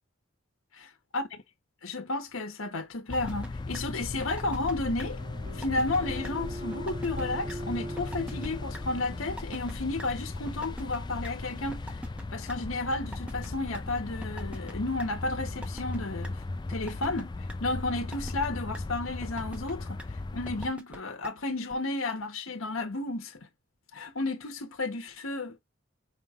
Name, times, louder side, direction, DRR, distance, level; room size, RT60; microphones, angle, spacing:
voice 1, 1.8-5.2 5.5-12.0 12.3-16.4 16.7-17.3 17.6-23.4 23.9-25.6, left 2 dB, 80° left, 1.1 m, -32 dB
sound 1, 3.1-20.7, left 2 dB, 20° left, 0.3 m, -37 dB
sound 2, 3.1-3.5 3.7-3.8 4.2-4.7 5.0-5.1 5.5-6.0 6.2-6.3 6.7-7.2 7.5-7.6 8.0-8.5 8.7-8.8 9.2-9.7 10.0-10.1 10.5-11.3 11.7-12.6 13.0-13.8 14.2-14.7 15.0-15.1 15.5-16.0 16.2-16.3 16.7-17.2 17.5-17.6 18.0-18.5 18.7-18.8 19.2-19.7 20.0-20.1 20.5-21.0 21.2-21.3 21.7-21.8, equal, 5° right, 0.8 m, -42 dB
sound 3, 4.8-10.0, right 1 dB, 35° right, 1.5 m, -42 dB
5.1 x 3.1 x 2.4 m
head